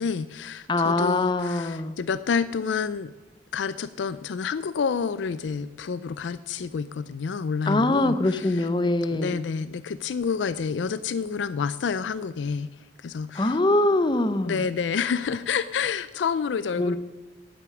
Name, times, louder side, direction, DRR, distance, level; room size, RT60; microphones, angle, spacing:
voice 1, 0.0-3.1 3.5-8.7 9.1-12.7 13.0-13.6 14.4-17.0, left 6 dB, 85° left, 14 dB, 0.4 m, -29 dB
voice 2, 0.7-1.9 7.7-9.4 13.3-14.6 16.8-17.0, left 2 dB, 25° left, 12 dB, 0.7 m, -23 dB
12.0 x 9.0 x 6.0 m, 1.2 s
head